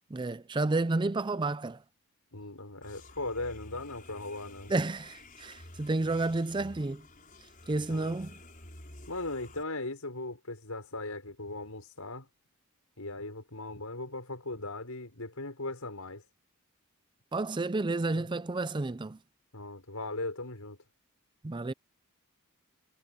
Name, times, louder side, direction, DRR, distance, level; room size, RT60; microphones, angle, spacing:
voice 1, 0.1-1.8 4.7-7.0 7.7-8.3 17.3-19.2 21.4-21.7, right 2 dB, 20° right, 0.4 m, -31 dB
voice 2, 2.3-4.7 7.9-8.2 9.1-12.3 13.0-16.2 18.1-18.3 19.5-20.8, left 2 dB, 75° left, 6.0 m, -38 dB
sound 1, 2.8-9.6, left 1 dB, 40° left, 6.2 m, -51 dB
head